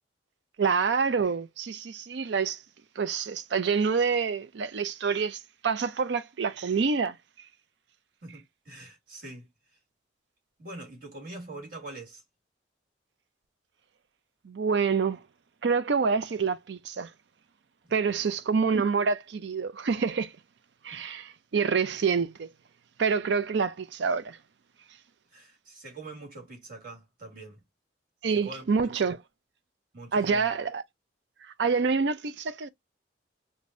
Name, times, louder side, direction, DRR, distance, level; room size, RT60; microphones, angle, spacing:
voice 1, 0.6-2.6 3.0-7.2 14.4-15.2 15.6-17.1 17.9-20.3 20.8-22.5 23.0-24.4 28.2-29.2 30.1-30.8 31.6-32.7, right 5 dB, 65° right, 0.4 m, -27 dB
voice 2, 8.2-9.5 10.6-12.2 20.9-21.0 25.3-27.6 28.3-28.9 29.9-30.5, right 2 dB, 45° right, 1.9 m, -44 dB
5.0 x 2.2 x 2.5 m
head